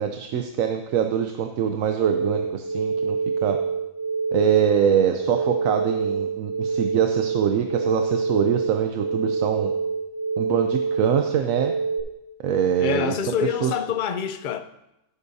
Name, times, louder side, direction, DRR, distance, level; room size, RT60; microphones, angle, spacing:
voice 1, 0.0-3.2 3.4-3.6 4.3-9.7 10.4-11.7 12.4-13.1 13.6-13.7, right 8 dB, 75° right, 1.1 m, -24 dB
sound 1, 2.0-12.0, right 5 dB, 15° right, 3.0 m, -26 dB
voice 2, 12.8-14.6, left 8 dB, 50° left, 0.6 m, -26 dB
15.5 x 8.4 x 2.7 m
omnidirectional pair, 1.4 m